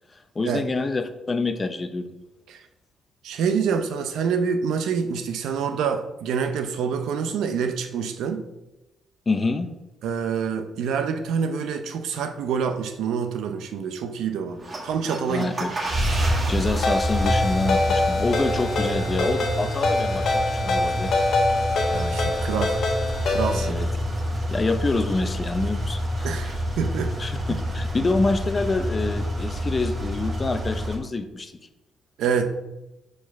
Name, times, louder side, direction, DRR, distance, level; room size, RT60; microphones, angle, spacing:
voice 1, 0.3-2.1 9.3-9.7 15.3-15.7 16.5-21.1 23.5-23.9 24.5-26.6 27.2-31.5, left 3 dB, 30° left, 8 dB, 0.7 m, -27 dB
voice 2, 3.2-8.5 10.0-15.5 21.9-22.8 23.3-23.8 26.2-27.1 32.2-32.5, right 6 dB, 80° right, 8 dB, 0.7 m, -26 dB
sound 1, 14.5-31.0, equal, 35° right, 1.4 m, -28 dB
Ringtone, 16.8-23.7, left 2 dB, 60° left, 1.3 m, -25 dB
4.8 x 4.6 x 5.9 m, 0.98 s
cardioid pair, 90°, 0 cm